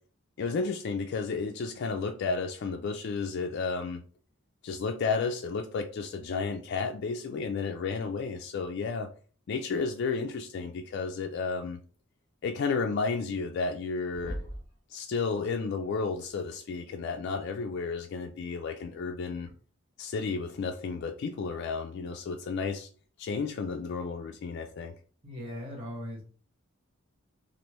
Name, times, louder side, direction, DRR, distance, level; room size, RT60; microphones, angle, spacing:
voice 1, 0.4-4.0 4.6-9.1 9.5-11.8 12.4-14.4 14.9-19.5 20.0-22.9 23.2-24.9, left 4 dB, 55° left, 0.3 m, -32 dB
sound 1, 14.1-14.8 16.5-16.6 18.4-18.6 19.4-19.5, equal, 20° left, 1.4 m, -39 dB
voice 2, 25.2-26.2, left 1 dB, 25° right, 1.1 m, -39 dB
3.2 x 2.5 x 3.0 m
head